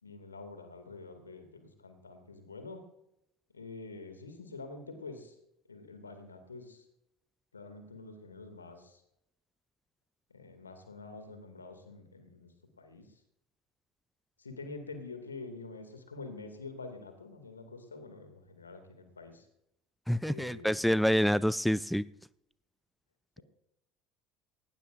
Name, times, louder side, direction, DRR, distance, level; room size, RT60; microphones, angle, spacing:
voice 1, 0.0-2.8 3.5-5.3 5.7-6.8 7.5-9.0 10.3-12.5 12.8-13.1 14.4-19.4 20.2-20.8, left 3 dB, 80° left, 2.2 m, -46 dB
voice 2, 20.1-22.0, equal, ahead, 0.4 m, -27 dB
18.0 x 17.5 x 2.5 m
figure-of-eight pair, 65°, 0 cm